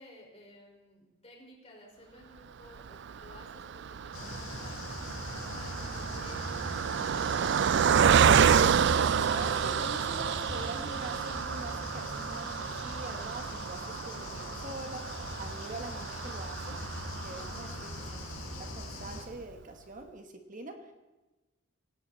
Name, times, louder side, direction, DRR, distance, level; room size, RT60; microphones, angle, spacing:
voice 1, 0.0-8.2, left 1 dB, 30° left, -1 dB, 5.1 m, -55 dB
Car passing by, 2.8-18.3 18.8-18.9 19.1-19.3, right 7 dB, 55° right, 0.4 m, -29 dB
sound 1, 4.1-19.2, left 2 dB, 85° left, 4.5 m, -41 dB
voice 2, 8.9-15.0 15.4-16.8 17.2-20.9, right 2 dB, 40° right, 5 dB, 1.5 m, -44 dB
18.5 x 17.5 x 4.2 m, 1.1 s
head